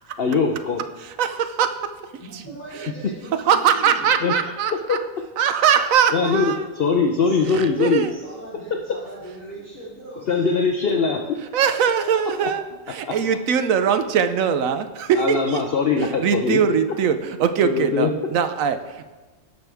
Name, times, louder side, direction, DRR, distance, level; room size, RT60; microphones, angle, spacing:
voice 1, 0.2-0.8 4.2-4.3 4.9-5.0 6.1-8.0 10.3-11.2 13.1-13.2 15.2-16.6 17.6-18.1, left 5 dB, 55° left, 3 dB, 0.8 m, -21 dB
voice 2, 1.0-1.8 2.1-2.4 2.7-2.9 3.4-5.0 5.4-6.6 7.5-8.2 11.5-15.6 16.0-19.1, right 7 dB, 75° right, 9 dB, 1.0 m, -22 dB
voice 3, 2.2-4.1 7.2-7.5 8.1-10.3, right 2 dB, 10° left, -11 dB, 2.7 m, -39 dB
17.0 x 6.1 x 3.4 m, 1.2 s
omnidirectional pair, 1.4 m